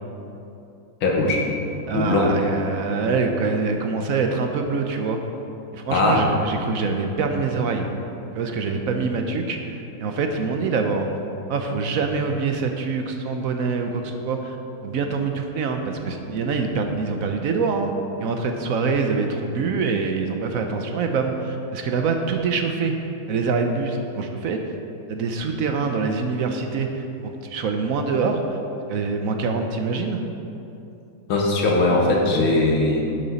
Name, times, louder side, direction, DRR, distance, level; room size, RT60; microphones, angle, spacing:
voice 1, 1.0-1.4 1.9-2.3 5.9-6.3 31.3-33.0, left 2 dB, 75° left, -1 dB, 2.2 m, -20 dB
voice 2, 1.9-5.2 5.7-7.9 8.3-11.1 11.5-14.6 14.8-17.9 18.2-23.0 23.3-24.6 25.1-28.6 28.9-30.2, right 4 dB, 70° right, 4 dB, 0.8 m, -25 dB
10.5 x 8.8 x 4.1 m, 2.8 s
omnidirectional pair, 2.3 m